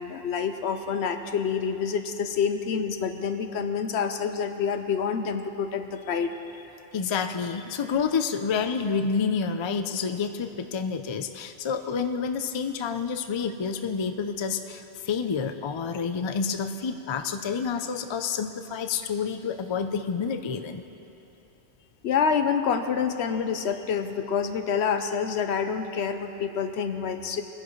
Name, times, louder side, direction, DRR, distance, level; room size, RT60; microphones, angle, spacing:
voice 1, 0.0-6.3 22.0-27.4, left 6 dB, 85° left, 8 dB, 1.0 m, -27 dB
voice 2, 6.9-20.8, left 6 dB, 40° left, 7 dB, 0.4 m, -29 dB
21.5 x 10.5 x 3.1 m, 2.9 s
omnidirectional pair, 1.1 m